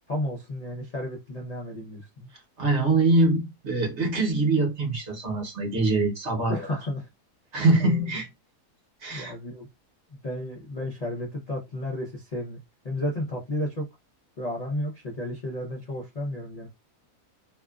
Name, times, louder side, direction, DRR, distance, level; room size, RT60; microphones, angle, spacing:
voice 1, 0.0-2.3 6.5-7.1 7.8-8.0 9.1-9.7 10.2-12.6 12.8-13.9 14.4-16.7, left 1 dB, 55° left, 0.4 m, -32 dB
voice 2, 2.6-6.6 7.5-8.3 9.0-9.3, right 2 dB, 50° right, 1.1 m, -23 dB
2.8 x 2.4 x 2.3 m
omnidirectional pair, 1.7 m